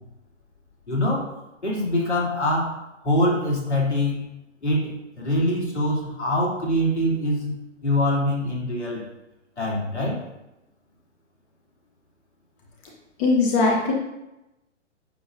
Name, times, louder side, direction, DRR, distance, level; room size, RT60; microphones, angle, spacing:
voice 1, 0.9-1.3 1.6-2.8 3.0-4.3 4.6-7.5 7.8-9.0 9.6-10.2, left 1 dB, 70° left, -4 dB, 2.9 m, -24 dB
voice 2, 13.2-13.9, left 3 dB, 25° left, -1 dB, 1.0 m, -20 dB
9.7 x 6.8 x 2.6 m, 0.97 s
figure-of-eight pair, 125°, 36 cm